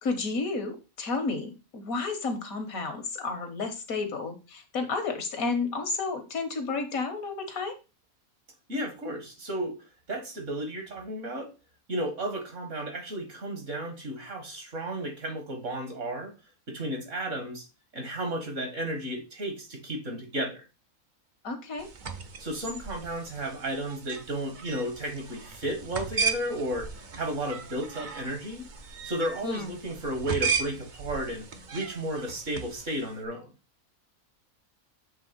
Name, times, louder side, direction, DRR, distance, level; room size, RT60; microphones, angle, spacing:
voice 1, 0.0-7.7 21.4-21.9 29.4-29.7, left 4 dB, 80° left, 6 dB, 1.7 m, -31 dB
voice 2, 8.7-9.8 10.1-11.5 11.9-16.3 16.7-17.7 17.9-20.6 22.4-28.7 29.0-31.5 31.7-33.5, right 1 dB, 60° right, 4 dB, 2.0 m, -33 dB
sound 1, 21.8-33.1, right 5 dB, 40° right, 0.8 m, -36 dB
7.5 x 3.4 x 5.2 m, 0.29 s
omnidirectional pair, 1.5 m